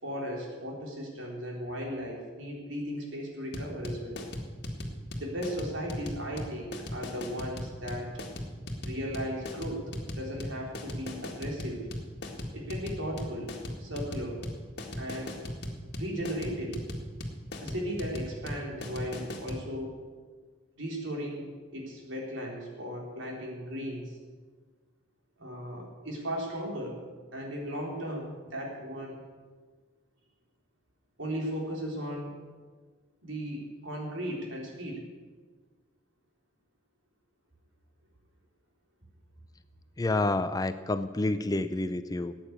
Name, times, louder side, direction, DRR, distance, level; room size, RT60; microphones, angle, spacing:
voice 1, 0.0-4.2 5.2-8.1 8.8-11.8 12.5-13.5 13.8-14.4 14.9-15.4 16.0-16.8 17.6-19.9 20.8-21.5 21.7-24.2 25.4-27.0 27.3-29.2 31.2-32.3 33.2-35.0, equal, 75° right, -1 dB, 3.9 m, -36 dB
sound 1, 3.5-19.6, left 1 dB, 55° left, 1.9 m, -37 dB
voice 2, 40.0-42.3, left 2 dB, 20° left, 11 dB, 0.5 m, -29 dB
14.5 x 9.0 x 8.1 m, 1.4 s
head